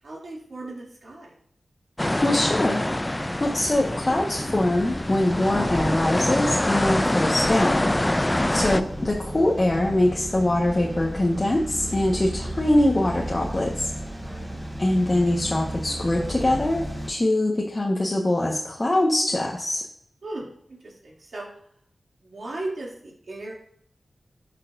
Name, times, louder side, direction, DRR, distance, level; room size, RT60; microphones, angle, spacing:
voice 1, 0.0-1.3 14.2-14.6 20.2-21.5 22.2-23.5, right 2 dB, 70° right, -4 dB, 2.9 m, -37 dB
sound 1, 2.0-8.8, left 1 dB, 20° left, 0.4 m, -25 dB
voice 2, 2.2-2.8 3.4-7.9 8.5-13.9 14.8-19.8, left 1 dB, 40° left, -2 dB, 1.4 m, -23 dB
sound 2, 3.0-17.1, equal, 10° right, 2.7 m, -35 dB
12.0 x 5.8 x 2.7 m, 0.66 s
cardioid pair, 40°, 0 cm